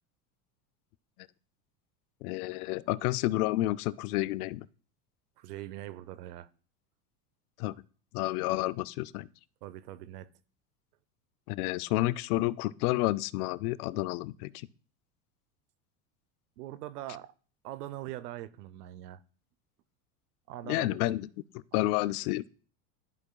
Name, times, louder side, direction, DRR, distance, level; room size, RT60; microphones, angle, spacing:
voice 1, 2.2-4.7 7.6-7.8 8.1-9.3 11.5-14.7 20.6-21.3 21.5-22.5, left 17 dB, 75° left, 0.6 m, -30 dB
voice 2, 5.4-6.5 9.6-10.3 16.6-17.3 17.6-19.2 20.5-21.0, right 14 dB, 85° right, 0.7 m, -42 dB
13.5 x 4.8 x 2.3 m
supercardioid pair, 115°, 45 cm